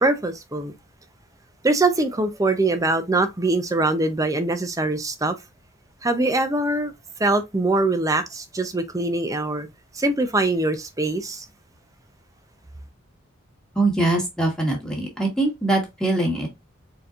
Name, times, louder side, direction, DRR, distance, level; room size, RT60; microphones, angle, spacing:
voice 1, 0.0-0.7 1.6-5.4 6.0-6.9 7.2-9.7 9.9-11.4, right 2 dB, 15° right, 0.6 m, -23 dB
voice 2, 13.7-16.5, right 2 dB, 5° left, 1.4 m, -22 dB
4.3 x 3.8 x 2.5 m
head